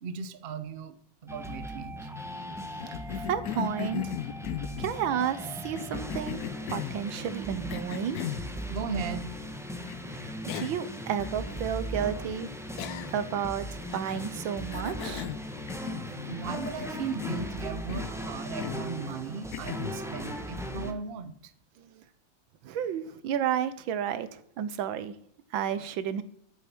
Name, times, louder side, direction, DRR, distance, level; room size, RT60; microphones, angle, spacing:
voice 1, 0.0-2.1 8.7-9.3 16.3-21.5, right 5 dB, 50° right, 11 dB, 0.7 m, -37 dB
sound 1, 1.3-20.9, equal, ahead, 0.6 m, -38 dB
voice 2, 2.7-4.1 4.8-6.4 6.7-8.2 10.1-12.5 13.1-15.3 21.8-22.0 22.6-25.1 25.5-26.2, right 9 dB, 90° right, 14 dB, 1.6 m, -32 dB
Cough, 2.8-5.0 5.7-7.0 7.7-8.5 9.9-10.0 10.5-10.9 11.2-11.3 12.8-13.3 13.9-14.3 14.7-16.2 16.5-17.5 17.9-18.2 18.6-18.9 19.5-20.0, left 12 dB, 70° left, 0.9 m, -37 dB
11.0 x 8.5 x 6.1 m, 0.67 s
omnidirectional pair, 2.1 m